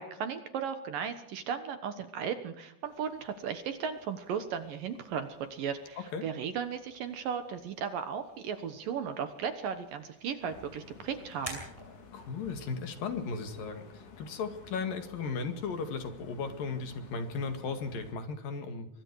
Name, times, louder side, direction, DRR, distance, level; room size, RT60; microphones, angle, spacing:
voice 1, 0.0-11.6, right 7 dB, 65° right, 9 dB, 2.4 m, -36 dB
sound 1, 2.8-14.4, right 1 dB, 5° right, 7.1 m, -53 dB
sound 2, 10.4-18.1, left 5 dB, 85° left, 6.0 m, -52 dB
voice 2, 12.1-18.9, left 4 dB, 55° left, 7 dB, 3.5 m, -36 dB
25.5 x 23.5 x 4.8 m, 0.76 s
omnidirectional pair, 5.3 m